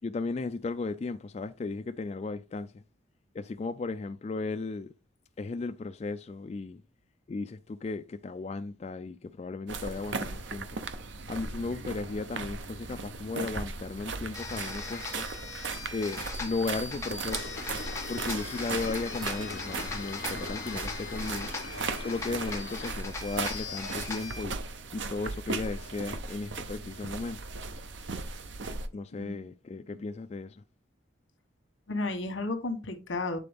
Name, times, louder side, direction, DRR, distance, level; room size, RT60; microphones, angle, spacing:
voice 1, 0.0-2.7 3.3-4.9 5.4-6.8 7.3-10.7 11.3-15.3 15.9-17.5 18.1-21.5 22.0-24.6 24.9-27.4 28.9-30.6, left 3 dB, 35° left, 0.3 m, -35 dB
sound 1, 9.7-28.9, right 4 dB, 75° right, 0.7 m, -37 dB
sound 2, 14.3-24.4, left 4 dB, 15° left, 1.1 m, -40 dB
sound 3, 17.4-22.9, left 3 dB, 60° left, 0.8 m, -42 dB
voice 2, 31.9-33.4, left 2 dB, 85° left, 1.2 m, -33 dB
8.3 x 3.8 x 3.5 m
head